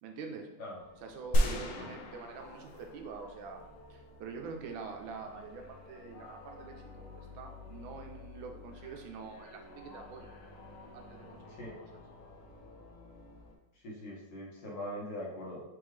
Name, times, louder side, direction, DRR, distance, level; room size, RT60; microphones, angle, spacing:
voice 1, 0.0-0.5 1.0-3.6 3.9-7.1 7.3-10.3 10.9-11.6, right 5 dB, 80° right, 3 dB, 1.4 m, -45 dB
sound 1, 0.8-13.6, left 3 dB, 50° left, 1.2 m, -52 dB
sound 2, 1.3-3.6, equal, 85° left, 1.5 m, -32 dB
voice 2, 1.4-1.9 11.6-11.7 13.8-15.6, left 1 dB, 65° left, -4 dB, 1.8 m, -42 dB
4.2 x 3.6 x 3.2 m, 0.95 s
omnidirectional pair, 2.1 m